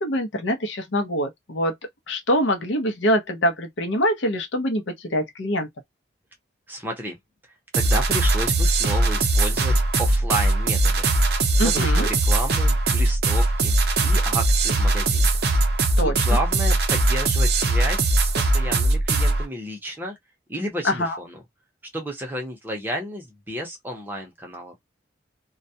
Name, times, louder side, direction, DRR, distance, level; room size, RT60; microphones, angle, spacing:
voice 1, 0.0-1.7 2.1-5.7 11.6-12.1 16.0-16.1 20.8-21.2, equal, 70° left, 0.7 m, -24 dB
voice 2, 6.7-7.2 7.7-11.1 11.6-15.3 16.0-20.1 20.5-21.4 21.9-24.7, equal, 10° right, 0.6 m, -32 dB
sound 1, 7.7-19.5, right 2 dB, 55° right, 0.6 m, -20 dB
2.3 x 2.1 x 2.6 m
head